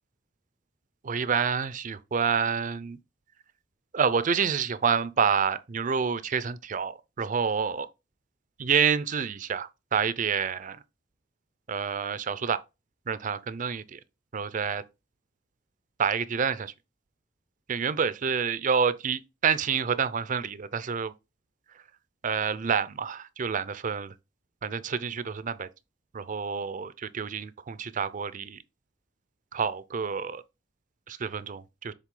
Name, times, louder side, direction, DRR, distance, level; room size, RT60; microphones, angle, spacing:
voice 1, 1.0-3.0 3.9-7.9 8.6-10.8 11.7-12.6 13.1-14.0 14.3-14.8 16.0-16.7 17.7-21.1 22.2-24.1 24.6-25.7 26.1-28.6 29.5-30.4 31.1-31.9, right 6 dB, 45° right, 0.5 m, -28 dB
7.3 x 3.6 x 3.7 m
head